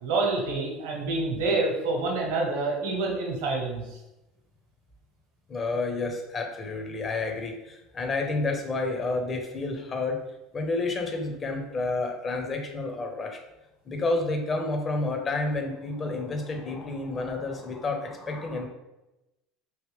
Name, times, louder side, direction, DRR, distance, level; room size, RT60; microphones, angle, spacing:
voice 1, 0.0-3.8, right 3 dB, 70° right, 0 dB, 0.9 m, -27 dB
voice 2, 5.5-10.2 10.5-13.4 13.8-18.7, left 3 dB, 35° left, 3 dB, 0.8 m, -30 dB
3.1 x 2.8 x 3.3 m, 0.97 s
hypercardioid pair, 70°, 0 cm